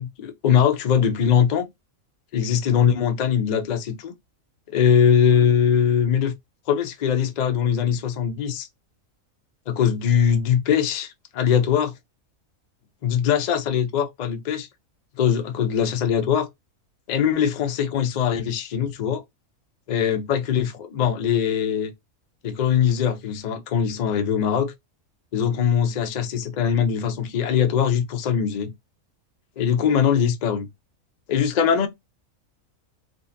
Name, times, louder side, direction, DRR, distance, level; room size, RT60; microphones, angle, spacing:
voice 1, 0.0-1.7 2.3-4.1 4.7-6.3 6.7-8.7 9.7-11.9 13.0-14.7 15.2-16.5 17.1-19.2 19.9-21.9 22.4-24.7 25.3-28.7 29.6-30.7 31.3-31.9, left 8 dB, 75° left, 0.4 m, -21 dB
3.7 x 2.4 x 2.6 m
omnidirectional pair, 1.4 m